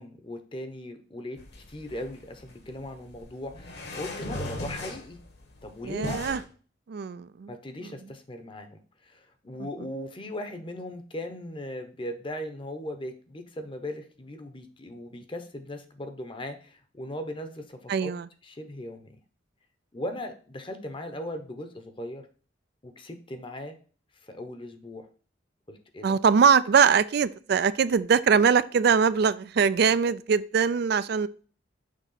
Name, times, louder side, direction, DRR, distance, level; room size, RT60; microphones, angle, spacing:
voice 1, 0.0-1.4 1.7-5.2 5.6-6.2 7.5-18.1 18.4-19.1 19.9-22.3 22.8-23.8 24.2-25.1 25.7-26.2, left 1 dB, 25° left, 7 dB, 0.8 m, -38 dB
sound 1, 1.4-6.4, left 1 dB, 55° left, 1.4 m, -39 dB
voice 2, 5.8-6.4 6.9-7.5 7.8-7.9 17.9-18.3 26.0-31.3, right 6 dB, 55° right, 16 dB, 0.3 m, -22 dB
6.5 x 3.0 x 5.6 m, 0.40 s
head